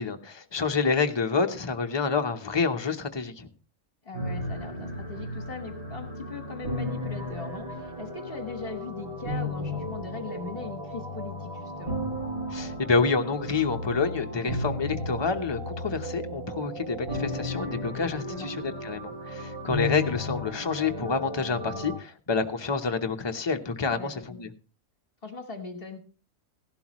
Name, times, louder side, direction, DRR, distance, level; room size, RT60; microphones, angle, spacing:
voice 1, 0.0-3.5 12.5-24.5, left 4 dB, 25° left, 0.7 m, -28 dB
voice 2, 4.0-12.0 18.3-18.6 23.9-24.5 25.2-26.0, left 3 dB, 45° left, 1.5 m, -40 dB
sound 1, 4.1-22.0, left 1 dB, 90° right, 8.4 m, -34 dB
16.0 x 11.5 x 3.0 m
omnidirectional pair, 1.4 m